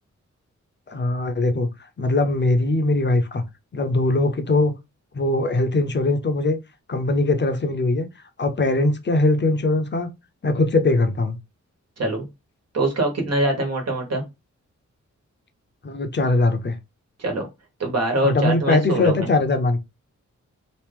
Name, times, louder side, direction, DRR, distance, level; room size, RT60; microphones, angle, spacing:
voice 1, 0.9-1.7 2.0-3.4 3.7-4.7 5.1-6.6 6.9-8.1 8.4-10.1 10.4-11.4 15.8-16.8 18.2-19.8, left 2 dB, 35° left, 0.7 m, -21 dB
voice 2, 12.7-14.2 17.2-17.5 17.8-19.3, right 1 dB, 55° right, 1.4 m, -23 dB
3.1 x 2.6 x 3.4 m
wide cardioid pair, 90°, 30 cm